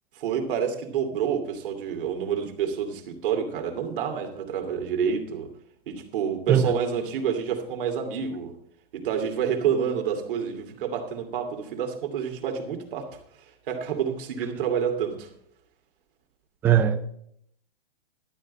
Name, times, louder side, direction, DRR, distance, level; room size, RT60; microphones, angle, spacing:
voice 1, 0.1-5.5 5.9-8.5 8.9-13.1 13.7-15.3, right 7 dB, 60° right, 4 dB, 2.7 m, -28 dB
voice 2, 16.6-17.0, right 9 dB, 5° right, 9 dB, 0.4 m, -19 dB
12.5 x 9.3 x 4.2 m, 0.69 s
hypercardioid pair, 150°, 30 cm